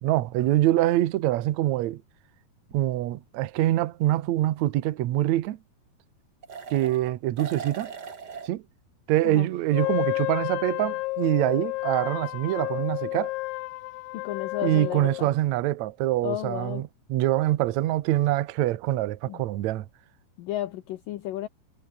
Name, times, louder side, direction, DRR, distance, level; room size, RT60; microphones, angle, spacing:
voice 1, 0.0-2.0 2.7-5.6 6.7-7.9 8.4-8.6 9.1-13.3 14.6-19.8, right 14 dB, 75° right, 1.7 m, -25 dB
sound 1, 2.7-2.8 6.4-7.1 7.4-8.5, right 6 dB, 35° right, 1.7 m, -39 dB
Wind instrument woodwind instrument, 9.7-15.3, left 21 dB, 90° left, 2.6 m, -31 dB
voice 2, 14.1-15.3 16.2-16.8 19.3-19.4 20.4-21.5, left 13 dB, 70° left, 2.4 m, -33 dB
omnidirectional pair, 4.6 m